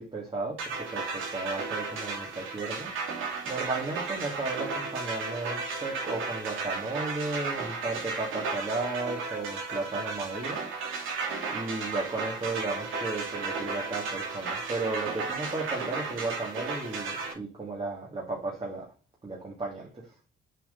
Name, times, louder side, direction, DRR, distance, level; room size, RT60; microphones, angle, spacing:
voice 1, 0.0-2.9 3.5-10.6 11.5-18.9 19.2-20.0, right 3 dB, 30° right, 2.4 m, -34 dB
sound 1, 0.6-17.3, right 4 dB, 85° right, 2.8 m, -34 dB
7.5 x 5.1 x 4.0 m
cardioid pair, 90°, 20 cm